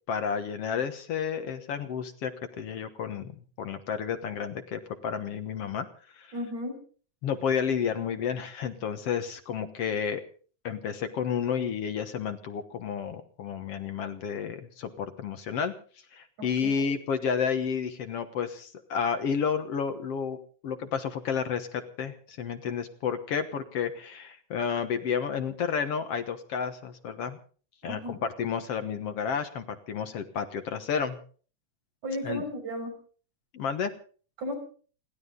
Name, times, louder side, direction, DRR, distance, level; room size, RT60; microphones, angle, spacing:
voice 1, 0.1-2.3 2.6-5.9 6.2-6.3 7.2-10.2 10.6-15.7 16.1-20.4 20.6-27.4 27.8-31.2 32.2-32.4 33.5-33.9, left 7 dB, 60° left, 8 dB, 2.1 m, -31 dB
voice 2, 6.3-6.8 16.4-16.9 27.8-28.2 32.0-32.9 34.4-34.5, equal, 75° right, 3 dB, 7.5 m, -35 dB
29.0 x 12.0 x 3.9 m, 0.43 s
omnidirectional pair, 3.3 m